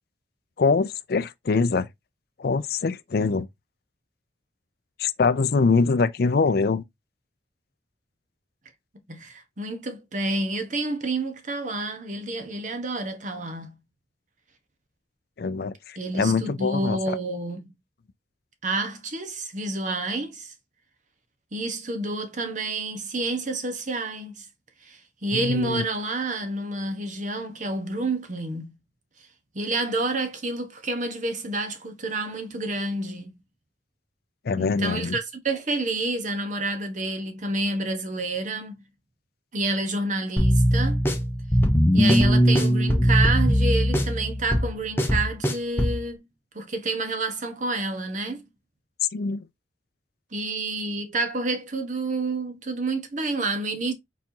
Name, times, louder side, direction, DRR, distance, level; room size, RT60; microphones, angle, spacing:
voice 1, 0.6-1.9 2.4-3.5 5.0-6.8 15.4-17.2 25.3-25.8 34.5-35.2 49.1-49.5, left 4 dB, 55° left, 0.4 m, -23 dB
voice 2, 9.1-13.7 16.0-17.7 18.6-20.5 21.5-24.5 24.8-28.7 29.5-33.3 34.6-38.8 39.5-41.0 41.9-46.2 46.5-48.5 50.3-53.9, right 2 dB, 45° right, 1.1 m, -29 dB
sound 1, 40.4-46.0, equal, 10° left, 0.8 m, -20 dB
4.4 x 4.2 x 2.8 m
head